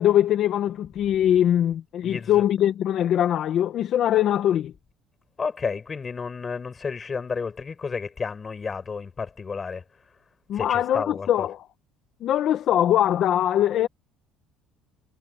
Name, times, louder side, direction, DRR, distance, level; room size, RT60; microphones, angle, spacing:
voice 1, 0.0-4.7 10.5-11.6 12.2-13.9, left 11 dB, 50° left, 1.3 m, -22 dB
voice 2, 2.0-2.5 5.4-9.8 10.5-11.5, left 5 dB, 25° left, 7.5 m, -31 dB
cardioid pair, 130°, 0 cm